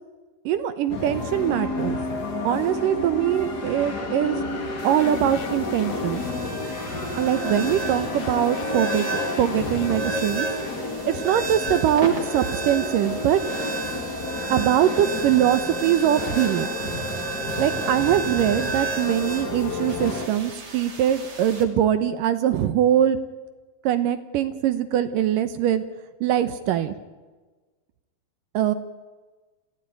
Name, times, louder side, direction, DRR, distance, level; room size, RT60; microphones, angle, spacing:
voice 1, 0.5-2.0 2.4-4.4 4.8-6.2 7.2-9.1 9.4-10.5 11.1-13.4 14.5-16.7 17.6-23.2 23.8-25.8 26.2-27.0 28.5-28.7, right 10 dB, 70° right, 12 dB, 2.4 m, -22 dB
sound 1, 0.9-20.3, left 2 dB, 30° left, 2.4 m, -31 dB
sound 2, 4.8-21.6, right 4 dB, 30° right, 3.0 m, -33 dB
sound 3, 4.9-6.5 7.3-10.9, left 8 dB, 70° left, 3.0 m, -38 dB
28.0 x 15.5 x 9.1 m, 1.3 s
omnidirectional pair, 4.4 m